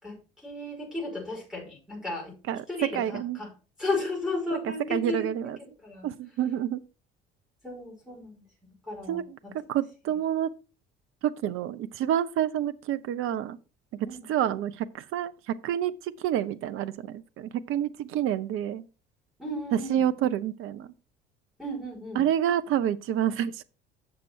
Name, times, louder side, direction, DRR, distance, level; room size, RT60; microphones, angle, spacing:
voice 1, 0.0-2.4 2.7-3.5 3.8-6.1 7.6-8.4 8.9-9.5 14.0-14.3 19.4-20.0 21.6-22.2, left 2 dB, ahead, 5.2 m, -34 dB
voice 2, 2.5-3.4 4.9-5.6 6.0-6.8 9.1-9.4 9.7-10.5 11.2-13.6 14.3-18.8 19.7-20.9 22.2-23.6, right 10 dB, 45° right, 0.7 m, -28 dB
7.7 x 6.7 x 4.5 m
figure-of-eight pair, 60°, 29 cm